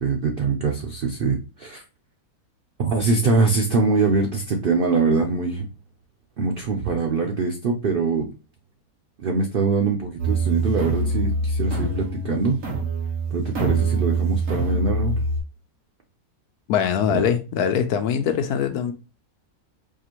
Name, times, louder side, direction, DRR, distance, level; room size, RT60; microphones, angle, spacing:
voice 1, 0.0-1.8 2.8-5.6 6.4-8.3 9.2-12.6 13.3-15.2 17.1-17.3, right 4 dB, 90° right, 0.4 m, -23 dB
sound 1, 10.2-15.4, right 2 dB, 60° right, 1.4 m, -24 dB
voice 2, 16.7-18.9, left 8 dB, 80° left, 1.1 m, -22 dB
4.7 x 2.5 x 2.9 m
omnidirectional pair, 1.6 m